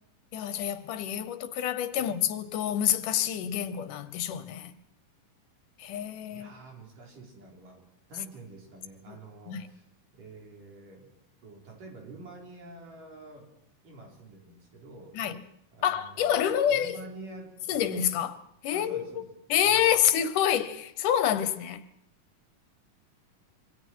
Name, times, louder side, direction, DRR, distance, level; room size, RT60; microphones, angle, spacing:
voice 1, 0.3-4.8 5.8-6.5 9.1-9.2 9.5-9.7 15.2-15.4 15.8-17.0 17.7-19.0 19.5-21.8, left 10 dB, 75° left, 2.5 m, -27 dB
voice 2, 6.3-7.8 8.1-9.8 10.1-11.2 11.4-13.5 13.8-15.2 15.7-17.6 18.7-19.3 19.6-20.1, right 2 dB, 70° right, 5.8 m, -48 dB
26.5 x 24.0 x 4.6 m
omnidirectional pair, 3.9 m